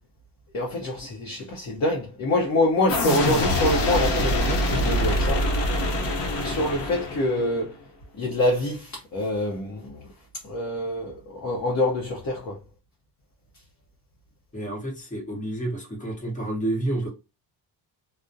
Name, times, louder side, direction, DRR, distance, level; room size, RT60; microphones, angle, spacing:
voice 1, 0.5-5.5 6.4-7.8 8.2-10.1 10.4-12.6, left 1 dB, 40° left, 0.7 m, -26 dB
sound 1, 2.9-7.6, left 1 dB, 90° left, 0.8 m, -24 dB
voice 2, 6.2-6.6 14.5-17.1, right 1 dB, 20° left, 0.9 m, -30 dB
2.3 x 2.0 x 2.6 m
cardioid pair, 110°, 41 cm